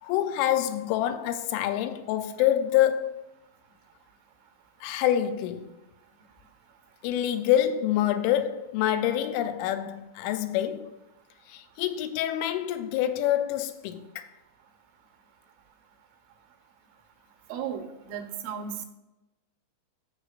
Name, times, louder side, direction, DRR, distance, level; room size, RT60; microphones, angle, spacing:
voice 1, 0.0-3.2 4.8-5.7 7.0-11.0 11.5-14.3, left 11 dB, 90° left, 3.1 m, -26 dB
voice 2, 17.5-18.9, right 8 dB, 85° right, 3.4 m, -35 dB
15.5 x 6.5 x 2.5 m
omnidirectional pair, 5.4 m